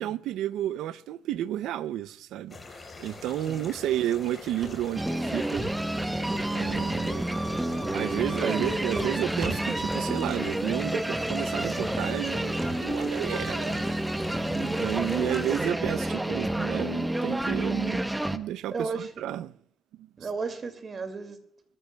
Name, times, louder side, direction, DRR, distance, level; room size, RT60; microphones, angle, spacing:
voice 1, 0.0-2.6 3.0-5.6 6.5-7.2 7.9-14.0 14.5-18.0 18.3-19.5 20.0-20.1, right 12 dB, 85° right, 0.5 m, -31 dB
sound 1, 2.5-15.7, left 3 dB, 25° left, 4.3 m, -44 dB
Run, 4.6-4.7 5.1-5.2 5.6-5.7 5.9-6.4 6.7-7.6 7.8-8.0 8.2-8.3 8.6-9.1 9.4-9.9 10.3-10.7 11.0-11.1 11.5-11.6 11.9-12.4 12.6-13.1 13.4-14.6 14.9-15.0 15.3-15.4, right 2 dB, 25° right, 6.3 m, -37 dB
sound 2, 4.9-18.4, right 1 dB, 10° right, 0.8 m, -29 dB
voice 2, 18.7-19.1 20.2-21.4, right 4 dB, 40° right, 2.2 m, -33 dB
24.0 x 14.0 x 2.3 m
cardioid pair, 90°, 0 cm